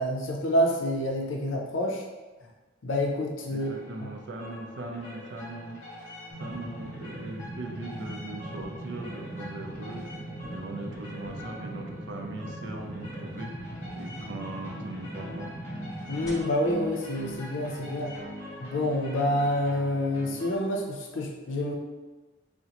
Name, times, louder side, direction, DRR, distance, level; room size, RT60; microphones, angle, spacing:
voice 1, 0.0-2.0 2.8-3.7 4.0-4.1 16.1-18.1 18.6-21.7, left 1 dB, 80° left, 1 dB, 0.5 m, -28 dB
voice 2, 3.5-5.8 6.4-10.1 10.5-15.5, right 2 dB, 65° right, 3 dB, 0.4 m, -40 dB
sound 1, 3.6-20.6, equal, 35° left, 0.9 m, -43 dB
sound 2, 6.3-16.3, right 1 dB, 15° left, 0.6 m, -40 dB
3.7 x 2.1 x 2.9 m, 1.2 s
head